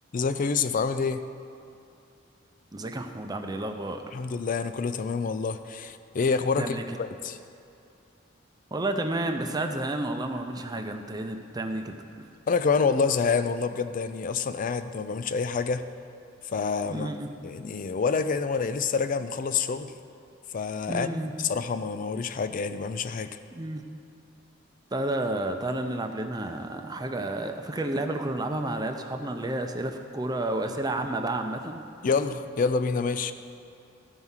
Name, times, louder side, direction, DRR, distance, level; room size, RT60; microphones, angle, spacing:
voice 1, 0.1-1.2 4.1-7.4 12.5-15.9 16.4-17.1 17.4-19.9 20.5-21.1 21.4-23.4 32.0-33.3, left 5 dB, 45° left, 10 dB, 0.4 m, -27 dB
voice 2, 2.7-4.0 6.6-7.0 8.7-12.3 16.9-17.3 20.9-21.3 23.5-23.8 24.9-31.8, right 1 dB, 20° right, 5 dB, 0.6 m, -31 dB
13.5 x 4.7 x 5.6 m, 2.7 s
head